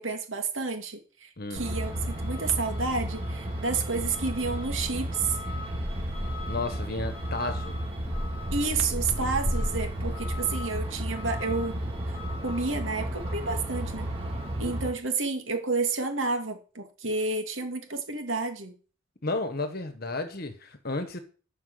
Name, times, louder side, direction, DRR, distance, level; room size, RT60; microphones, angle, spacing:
voice 1, 0.0-5.4 8.5-11.8 12.4-14.1 14.6-18.7, right 4 dB, 85° right, 2.4 m, -30 dB
Truck, 1.6-14.9, equal, 30° right, 4.0 m, -32 dB
voice 2, 6.5-7.8 19.2-21.2, left 2 dB, 50° left, 1.4 m, -32 dB
12.5 x 5.9 x 7.9 m
head